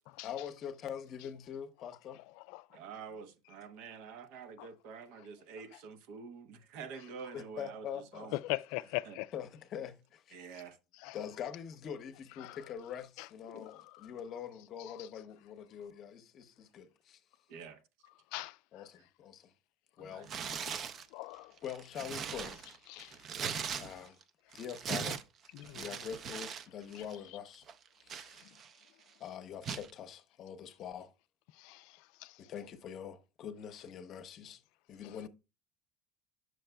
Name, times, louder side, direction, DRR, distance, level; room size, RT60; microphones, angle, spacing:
voice 1, 0.2-2.2 7.3-8.3 9.3-10.4 11.1-17.2 18.7-19.5 20.0-20.3 21.6-22.6 23.0-23.1 23.8-24.2 24.5-25.2 25.7-27.6 28.0-28.3 29.2-31.1 32.4-34.6 34.9-35.3, left 8 dB, 40° left, 0.7 m, -44 dB
voice 2, 2.7-8.4 9.0-9.2 10.3-10.8 17.5-17.8 20.0-20.3, right 6 dB, 70° right, 0.8 m, -47 dB
voice 3, 8.4-9.3 11.0-11.2 12.4-12.6 13.5-13.8 14.9-15.0 18.3-18.6 21.1-21.5 22.9-23.1 25.5-25.9 31.6-32.4, left 20 dB, 75° left, 0.3 m, -40 dB
Tearing, 20.2-21.1 21.6-24.2 24.5-26.7 26.9-27.2 27.7-28.8 29.6-29.9, right 7 dB, 35° right, 0.5 m, -40 dB
8.9 x 6.3 x 2.3 m
cardioid pair, 140°, 0 cm